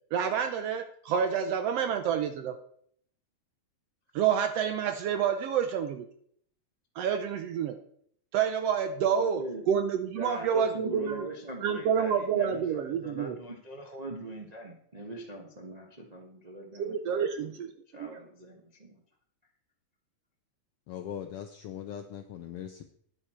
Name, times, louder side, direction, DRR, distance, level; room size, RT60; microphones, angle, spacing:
voice 1, 0.1-2.5 4.1-6.0 7.0-7.8 8.3-11.3 11.6-13.4 16.8-17.7 18.0-18.2, right 8 dB, 75° right, 8 dB, 1.5 m, -28 dB
voice 2, 9.1-9.9 10.1-19.0, right 1 dB, 55° right, 0 dB, 0.4 m, -42 dB
voice 3, 20.9-22.8, left 9 dB, 80° left, 6 dB, 1.3 m, -40 dB
11.0 x 9.9 x 4.4 m, 0.65 s
omnidirectional pair, 3.4 m